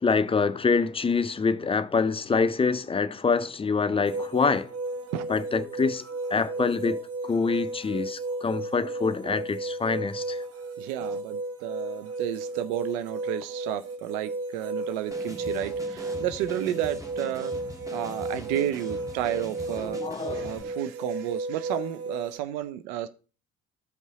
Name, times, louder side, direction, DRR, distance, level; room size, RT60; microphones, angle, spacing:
voice 1, 0.0-4.7 5.3-10.4 19.8-20.7, left 4 dB, 15° left, 0.5 m, -26 dB
sound 1, 4.0-22.4, right 2 dB, 30° right, 1.0 m, -34 dB
voice 2, 10.8-17.5 17.9-20.0 20.3-23.1, right 12 dB, 65° right, 0.6 m, -32 dB
sound 2, 15.1-20.6, right 1 dB, 5° right, 1.2 m, -43 dB
13.0 x 5.4 x 2.8 m
figure-of-eight pair, 50°, 44 cm